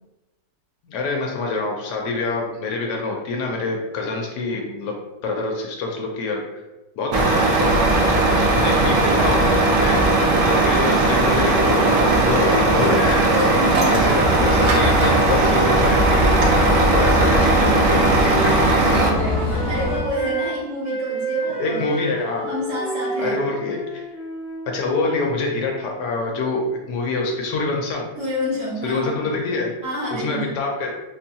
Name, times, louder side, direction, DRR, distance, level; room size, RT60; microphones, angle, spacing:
voice 1, 0.8-6.4 7.0-7.3 7.6-10.0 10.4-13.5 13.9-18.5 21.6-22.5 23.2-24.0 24.7-28.1 28.8-29.7 30.1-30.9, left 3 dB, 75° left, 1 dB, 1.1 m, -25 dB
Truck, 7.1-19.1, right 2 dB, 70° right, 1.0 m, -18 dB
voice 2, 13.3-14.2 17.1-17.9 18.3-21.9 22.4-23.4 28.1-29.4 29.8-30.6, equal, 55° right, -6 dB, 1.4 m, -29 dB
sound 1, 14.2-20.0, left 1 dB, 15° right, 0.5 m, -24 dB
Wind instrument woodwind instrument, 16.9-20.5 20.8-26.1, right 2 dB, 45° left, 0.7 m, -31 dB
4.1 x 2.2 x 2.7 m, 1.1 s
omnidirectional pair, 1.9 m